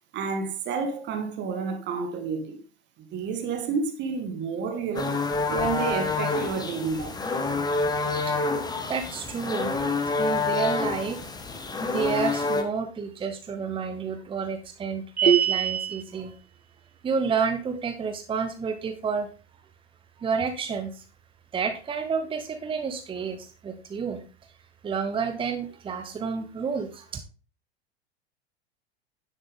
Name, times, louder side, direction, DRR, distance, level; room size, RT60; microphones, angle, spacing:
voice 1, 0.1-2.6 3.1-5.2 5.5-7.2, right 5 dB, 35° right, 1.8 m, -30 dB
sound 1, 4.9-12.6, left 3 dB, 10° left, 1.3 m, -27 dB
voice 2, 8.8-9.7 10.2-11.2 11.8-16.3 17.0-19.3 20.2-21.0 21.5-24.2 24.8-27.1, right 5 dB, 15° right, 1.0 m, -30 dB
sound 2, 15.2-16.0, right 8 dB, 80° right, 0.8 m, -22 dB
10.0 x 7.5 x 3.6 m
figure-of-eight pair, 85°, 32 cm